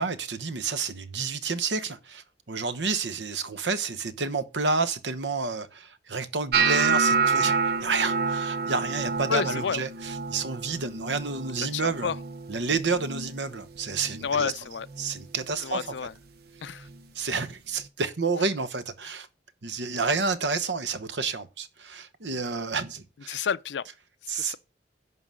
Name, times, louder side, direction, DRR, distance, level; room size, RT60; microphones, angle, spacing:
voice 1, 0.0-12.1 12.5-14.5 15.0-15.9 17.1-19.3 19.6-23.5 24.3-24.6, right 4 dB, 85° right, 1.0 m, -30 dB
sound 1, 6.5-12.6 12.9-13.4 13.8-14.3 14.9-15.1 16.9-17.0, right 5 dB, 60° right, 0.8 m, -28 dB
voice 2, 9.3-9.8 11.7-12.2 14.2-14.9 15.6-16.1 16.6-16.9 23.3-23.8 24.3-24.6, left 6 dB, 85° left, 0.5 m, -29 dB
11.0 x 3.9 x 7.6 m
head